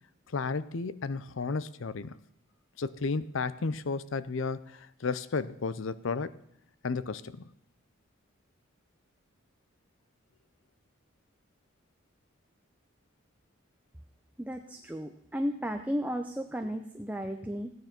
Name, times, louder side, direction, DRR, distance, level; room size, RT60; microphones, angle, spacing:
voice 1, 0.3-2.2 2.8-6.4 6.8-7.4, left 4 dB, 70° left, 0.6 m, -33 dB
voice 2, 14.4-17.7, equal, 5° right, 0.6 m, -34 dB
15.5 x 9.4 x 5.9 m
head